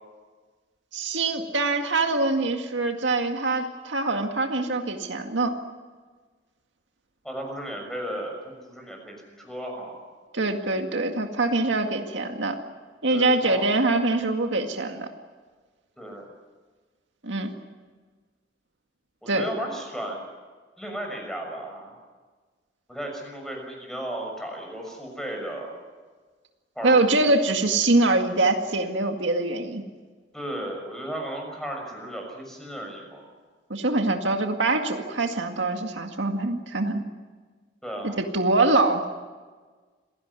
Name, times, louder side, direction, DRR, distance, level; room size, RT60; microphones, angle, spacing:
voice 1, 0.9-5.5 10.3-12.6 13.0-15.1 17.2-17.5 19.3-19.4 26.8-29.8 33.7-37.0 38.2-39.1, right 2 dB, 85° right, 4 dB, 2.0 m, -24 dB
voice 2, 7.2-10.0 13.1-13.6 16.0-16.3 19.2-20.2 20.8-21.9 22.9-25.7 26.7-26.9 30.3-33.2 37.8-38.2, right 1 dB, ahead, 2 dB, 6.3 m, -35 dB
27.0 x 17.0 x 9.8 m, 1.4 s
head